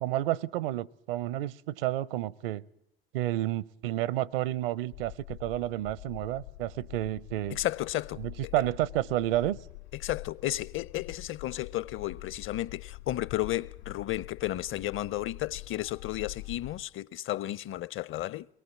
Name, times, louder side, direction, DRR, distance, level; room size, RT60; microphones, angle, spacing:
voice 1, 0.0-2.6 3.1-7.6 8.2-9.6, right 14 dB, 70° right, 0.8 m, -30 dB
sound 1, 4.9-16.8, left 21 dB, 75° left, 2.5 m, -45 dB
voice 2, 7.5-8.2 10.0-18.5, left 14 dB, 45° left, 0.7 m, -33 dB
23.5 x 19.0 x 7.2 m
figure-of-eight pair, 65°, 30 cm